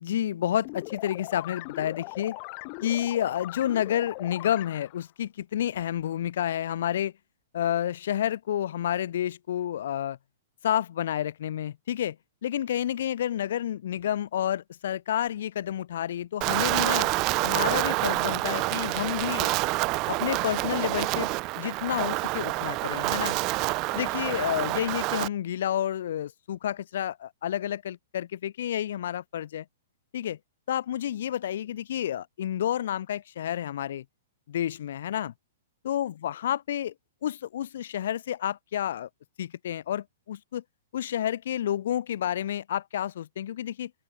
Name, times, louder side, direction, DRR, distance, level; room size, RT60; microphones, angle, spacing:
voice 1, 0.0-2.4 2.8-7.1 7.5-10.2 10.6-12.2 12.4-17.1 17.4-19.5 20.1-23.3 23.9-29.6 30.1-30.4 30.7-34.0 34.5-35.3 35.8-36.9 37.2-39.1 39.4-40.6 40.9-43.9, left 11 dB, 65° left, 1.3 m, -30 dB
sound 1, 0.6-5.1, left 40 dB or more, 35° left, 1.4 m, -40 dB
Wind, 16.4-25.3, right 24 dB, 30° right, 0.6 m, -27 dB
open air
hypercardioid pair, 160°, 0 cm